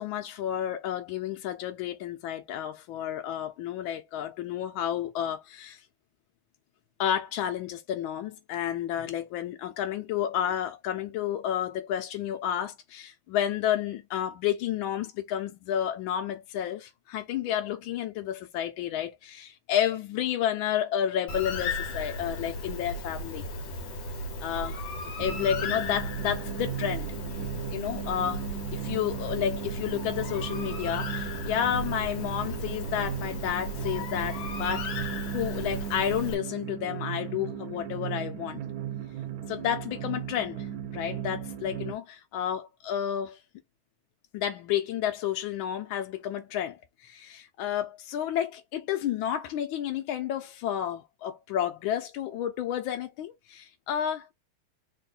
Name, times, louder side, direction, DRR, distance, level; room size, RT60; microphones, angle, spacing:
voice 1, 0.0-5.8 7.0-23.4 24.4-24.8 25.2-27.1 27.7-34.9 35.3-38.6 39.5-43.4 44.3-54.3, left 10 dB, 80° left, 1.4 m, -31 dB
Bird, 21.3-36.3, left 1 dB, 60° left, 1.6 m, -36 dB
sound 1, 25.2-41.9, right 9 dB, 85° right, 0.8 m, -37 dB
3.6 x 2.2 x 3.8 m
omnidirectional pair, 2.2 m